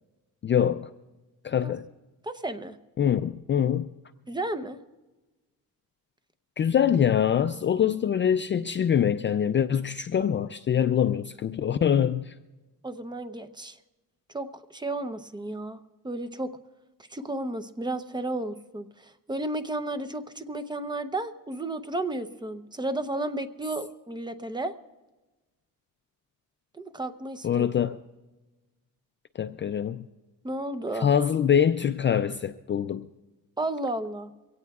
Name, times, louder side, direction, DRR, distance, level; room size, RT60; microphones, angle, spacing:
voice 1, 0.4-0.9 1.4-1.9 3.0-3.9 6.6-12.3 27.4-28.0 29.4-30.1 30.9-33.1, left 8 dB, 35° left, 0.4 m, -24 dB
voice 2, 2.2-2.8 4.3-4.8 12.8-13.8 14.3-15.8 16.0-16.5 17.1-24.7 26.7-27.7 30.4-31.1 33.6-34.3, right 2 dB, 10° right, 0.7 m, -33 dB
23.5 x 17.5 x 2.4 m
cardioid pair, 130°, 35 cm